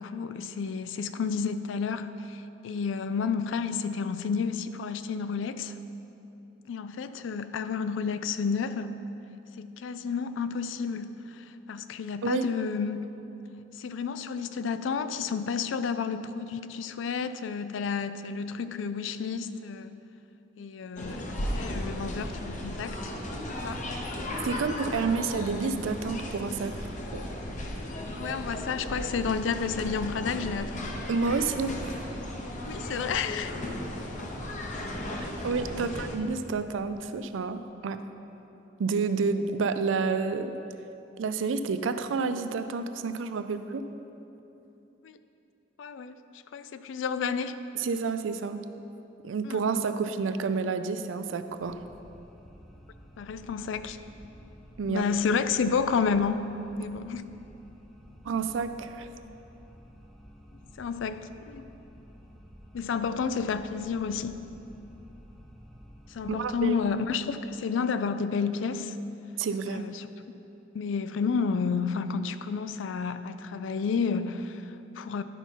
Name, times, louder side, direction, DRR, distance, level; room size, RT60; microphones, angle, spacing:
voice 1, 0.0-5.8 6.7-9.0 9.6-13.0 13.7-19.9 20.6-23.0 23.6-23.8 28.2-30.9 32.7-33.5 35.7-36.1 45.0-45.2 45.8-46.1 46.5-47.6 49.4-49.6 53.2-54.0 54.9-56.5 56.8-57.3 60.8-61.7 62.7-64.4 66.1-69.0 69.7-70.1 70.7-75.2, left 5 dB, 75° left, 12 dB, 0.4 m, -31 dB
sound 1, 21.0-36.2, left 1 dB, 40° left, 0.8 m, -35 dB
voice 2, 24.4-26.8 27.1-27.2 31.1-32.1 35.1-38.0 38.8-40.5 41.2-43.9 47.8-48.6 49.2-51.8 54.8-55.1 58.2-59.1 66.3-66.8 69.4-69.8, right 4 dB, 80° right, 10 dB, 0.4 m, -29 dB
sound 2, 51.6-66.7, equal, ahead, 0.7 m, -52 dB
10.5 x 5.5 x 4.5 m, 2.9 s
head